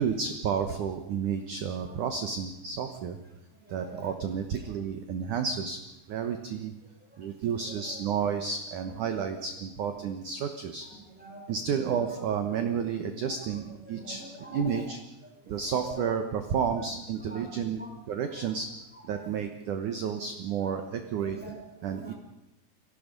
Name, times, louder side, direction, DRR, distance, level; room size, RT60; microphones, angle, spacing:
voice 1, 0.0-3.2 3.7-5.8 6.1-6.7 7.2-10.9 11.5-14.2 14.5-15.0 15.5-17.8 18.1-18.7 19.0-21.4 21.8-22.1, right 7 dB, 65° right, 6 dB, 2.2 m, -31 dB
voice 2, 1.7-2.0 3.5-4.1 4.5-4.7 7.1-8.2 10.8-11.5 11.9-12.2 13.2-14.9 15.2-16.1 16.6-16.9 17.2-18.6 19.1-19.4 20.6-20.8 21.2-22.1, right 1 dB, ahead, 1 dB, 4.2 m, -47 dB
29.5 x 19.0 x 5.3 m, 0.92 s
omnidirectional pair, 5.0 m